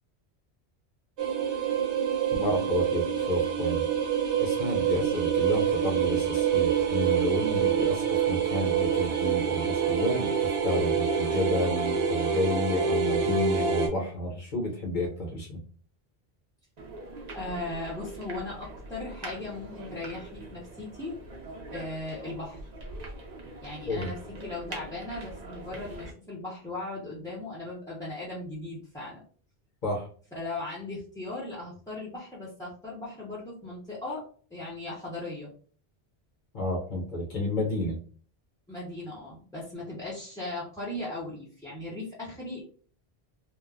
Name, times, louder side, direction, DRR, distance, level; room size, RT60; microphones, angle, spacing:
sound 1, 1.2-13.9, right 7 dB, 85° right, 1.0 m, -26 dB
voice 1, 2.3-3.8 4.4-15.6 23.9-24.1 29.8-30.1 36.5-38.0, left 1 dB, 50° left, -3 dB, 0.8 m, -30 dB
sound 2, 16.8-26.1, right 2 dB, 45° right, 0.7 m, -43 dB
voice 2, 17.3-21.2 21.7-22.6 23.6-29.2 30.3-34.2 34.5-35.5 38.7-42.6, left 2 dB, 5° left, -6 dB, 0.5 m, -38 dB
3.1 x 2.0 x 2.3 m, 0.44 s
omnidirectional pair, 1.1 m